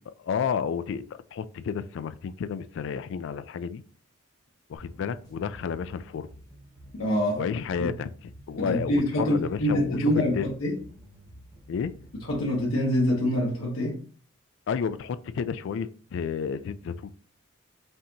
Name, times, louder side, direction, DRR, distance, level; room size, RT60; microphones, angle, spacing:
voice 1, 0.2-1.0 1.3-3.8 4.7-6.3 7.4-8.1 8.5-10.5 11.7-11.9 14.7-17.1, left 6 dB, 60° left, 0.3 m, -31 dB
sound 1, 4.8-12.8, right 1 dB, 20° left, 1.3 m, -50 dB
voice 2, 7.0-7.5 7.8-7.9 8.6-10.8 12.2-14.0, left 1 dB, 90° left, 0.8 m, -25 dB
5.4 x 2.8 x 2.6 m
head